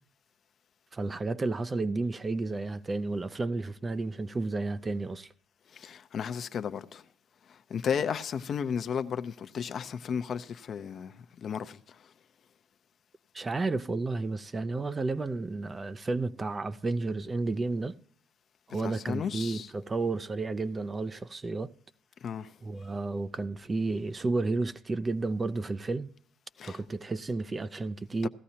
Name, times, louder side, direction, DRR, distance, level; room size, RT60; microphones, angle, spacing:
voice 1, 0.9-5.3 13.3-17.9 18.7-21.7 22.6-26.1 26.6-28.3, right 3 dB, 25° right, 0.5 m, -32 dB
voice 2, 5.7-7.0 7.5-11.8 18.8-19.7 22.2-22.5 26.6-26.8 28.2-28.3, left 7 dB, 50° left, 0.6 m, -34 dB
17.0 x 13.5 x 2.9 m
supercardioid pair, 80°, 0 cm